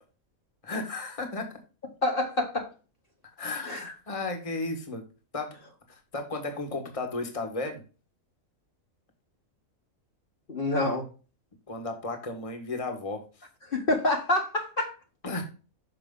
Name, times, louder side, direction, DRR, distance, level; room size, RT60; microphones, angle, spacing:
voice 1, 0.6-1.5 3.4-5.0 5.3-5.6 5.9-7.8 11.7-13.2 15.2-15.4, left 3 dB, 25° left, 5 dB, 1.5 m, -34 dB
voice 2, 2.0-2.7 3.7-3.8 10.5-11.1 13.7-14.9, left 2 dB, 40° left, 0 dB, 1.5 m, -27 dB
6.4 x 6.0 x 3.7 m, 0.34 s
omnidirectional pair, 1.4 m